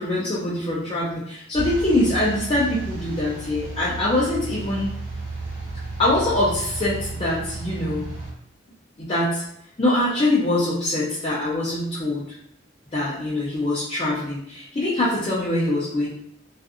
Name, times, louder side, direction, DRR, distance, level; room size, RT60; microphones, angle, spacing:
voice 1, 0.0-4.9 6.0-8.1 9.0-9.4 9.8-12.2 12.9-16.1, left 1 dB, 30° left, -8 dB, 0.5 m, -23 dB
sound 1, 1.5-8.3, right 3 dB, 65° right, 1.0 m, -33 dB
2.5 x 2.4 x 2.5 m, 0.72 s
head